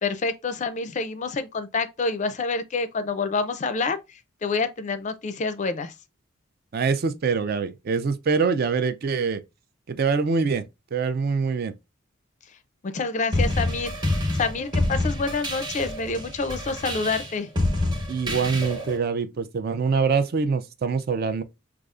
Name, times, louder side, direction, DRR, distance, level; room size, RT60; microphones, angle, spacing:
voice 1, 0.0-4.0 4.4-5.9 12.8-13.9 14.3-17.5, left 4 dB, 35° left, 0.4 m, -27 dB
voice 2, 6.7-9.4 9.9-10.6 10.9-11.7 18.1-21.4, right 5 dB, 50° right, 0.4 m, -24 dB
sound 1, 13.3-19.0, left 1 dB, 20° right, 1.0 m, -27 dB
4.9 x 2.3 x 2.4 m
head